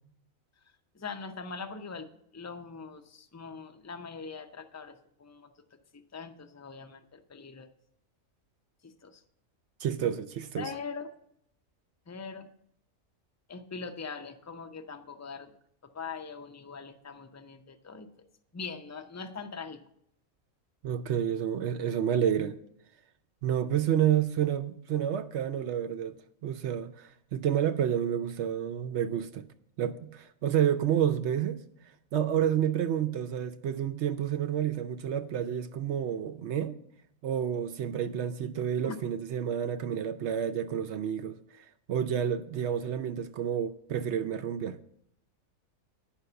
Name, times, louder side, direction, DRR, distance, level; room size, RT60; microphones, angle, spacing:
voice 1, 0.9-2.1 2.3-5.5 5.9-7.7 8.8-9.2 10.6-11.1 12.1-12.5 13.5-15.5 15.9-18.2 18.5-19.8 38.8-39.0, left 5 dB, 25° left, 0.3 m, -42 dB
voice 2, 9.8-10.7 20.8-22.6 23.4-26.1 26.4-29.4 29.8-31.6 32.1-36.8 37.2-44.8, right 9 dB, 65° right, 0.8 m, -29 dB
9.8 x 5.9 x 6.7 m
omnidirectional pair, 1.4 m